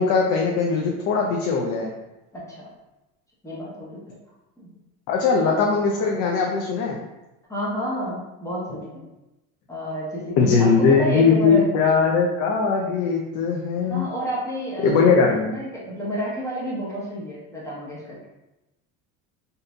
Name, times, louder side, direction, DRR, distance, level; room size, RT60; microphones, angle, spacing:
voice 1, 0.0-1.9 5.1-7.0 10.4-14.0 14.8-15.5, left 5 dB, 50° left, -1 dB, 0.5 m, -20 dB
voice 2, 2.3-2.7 3.4-4.1 4.6-4.7 7.5-9.0 9.7-11.6 13.9-18.2, equal, 10° left, -6 dB, 0.9 m, -30 dB
3.7 x 2.7 x 2.3 m, 0.99 s
supercardioid pair, 120°, 40 cm